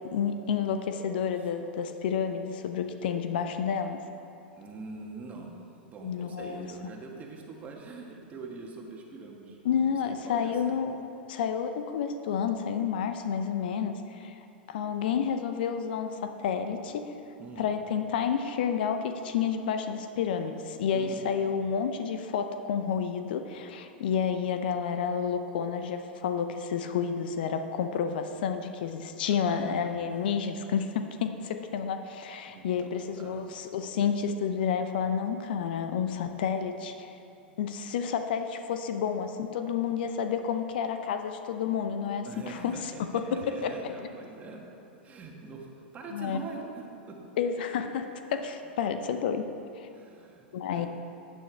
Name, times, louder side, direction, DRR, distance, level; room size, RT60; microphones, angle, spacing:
voice 1, 0.1-4.0 6.0-6.7 9.6-11.0 11.3-14.4 14.7-17.1 17.6-37.2 37.6-43.9 46.1-46.5 47.4-48.1 48.3-49.5 49.8-49.9 50.5-50.9, left 7 dB, 60° left, 7 dB, 0.7 m, -30 dB
voice 2, 4.6-10.8 17.4-17.7 20.9-21.3 29.3-30.0 32.5-33.4 37.4-37.5 42.2-44.6 45.0-47.2 49.9-50.9, right 3 dB, 25° right, 0 dB, 1.7 m, -44 dB
15.5 x 9.1 x 3.4 m, 2.7 s
figure-of-eight pair, 95°, 6 cm